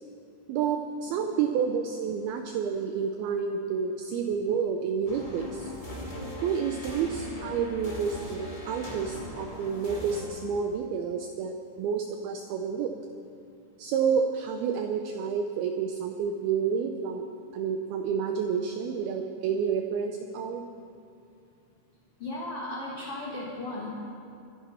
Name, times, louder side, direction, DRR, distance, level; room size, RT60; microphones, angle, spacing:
voice 1, 0.5-5.7 6.4-12.9 13.8-17.2 17.5-20.6, right 6 dB, 85° right, 4 dB, 2.2 m, -29 dB
sound 1, 5.1-10.2, left 1 dB, 20° left, 1.5 m, -39 dB
voice 2, 22.2-23.9, left 2 dB, 45° left, -5 dB, 2.1 m, -36 dB
24.5 x 10.5 x 5.6 m, 2.6 s
omnidirectional pair, 5.4 m